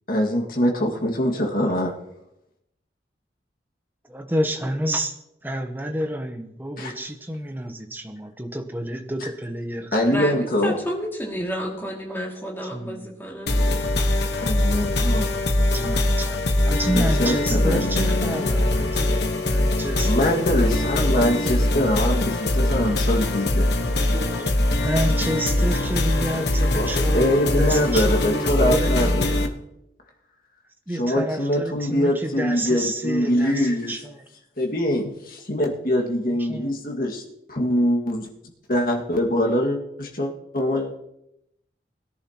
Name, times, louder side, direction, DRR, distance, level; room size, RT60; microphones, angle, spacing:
voice 1, 0.1-1.9 6.8-6.9 9.9-10.8 14.4-15.3 16.9-18.5 20.0-23.7 26.7-29.5 31.0-34.0 34.6-37.2 37.5-38.3 38.7-41.0, left 1 dB, 55° left, 0 dB, 2.0 m, -23 dB
voice 2, 4.1-5.2 5.4-10.2 12.7-13.1 15.6-16.4 16.7-21.1 22.9-23.3 24.0-29.4 30.9-34.2 36.3-36.7, right 1 dB, 10° right, 5 dB, 1.0 m, -30 dB
voice 3, 10.1-13.8, equal, 15° left, -2 dB, 2.4 m, -31 dB
sound 1, 13.5-29.5, left 1 dB, 75° left, 1.2 m, -22 dB
21.0 x 10.5 x 3.0 m, 0.83 s
head